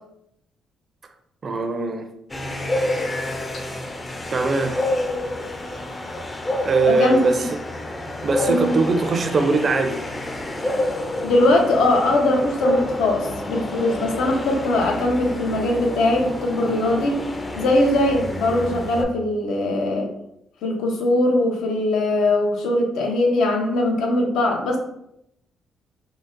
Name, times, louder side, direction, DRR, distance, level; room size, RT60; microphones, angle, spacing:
voice 1, 1.4-2.1 4.3-4.8 6.6-7.5 8.2-10.1, right 4 dB, 45° right, 0.4 m, -21 dB
sound 1, 2.3-19.0, left 1 dB, 25° left, 0.4 m, -28 dB
voice 2, 6.9-7.3 8.5-8.7 11.2-17.2 17.6-20.1 20.6-24.8, left 1 dB, 80° left, 0.6 m, -21 dB
3.9 x 2.0 x 2.5 m
cardioid pair, 90°, 0 cm